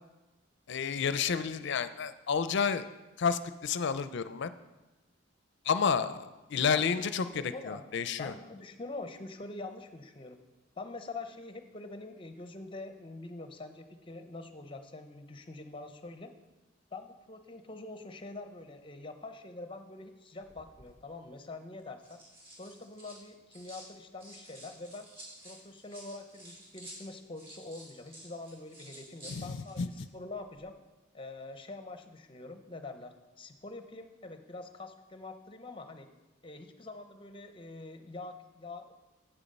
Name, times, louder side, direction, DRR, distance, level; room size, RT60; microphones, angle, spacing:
voice 1, 0.7-2.9 3.2-4.5 5.7-6.2 6.5-8.3 29.3-29.9, left 6 dB, 60° left, 12 dB, 0.5 m, -30 dB
voice 2, 6.7-7.8 8.2-10.4 10.8-16.3 16.9-22.2 22.6-25.1 25.4-30.7 31.1-36.1 36.4-38.9, left 3 dB, 25° left, 7 dB, 0.7 m, -45 dB
sound 1, 20.4-20.9 21.8-23.9 24.2-30.1 30.3-30.6, equal, 30° right, 2.7 m, -52 dB
8.1 x 7.1 x 5.4 m, 1.1 s
head